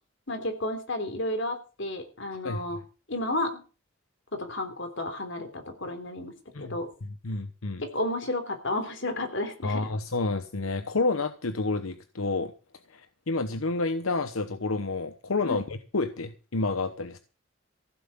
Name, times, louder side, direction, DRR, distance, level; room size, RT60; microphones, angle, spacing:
voice 1, 0.3-2.8 3.1-3.6 4.3-6.3 6.6-6.9 7.8-9.8 15.4-15.6, left 1 dB, 60° left, 8 dB, 3.3 m, -32 dB
voice 2, 2.4-2.8 6.5-7.8 9.6-12.5 12.9-17.2, left 3 dB, 90° left, 10 dB, 1.0 m, -30 dB
15.5 x 7.6 x 7.2 m, 0.35 s
head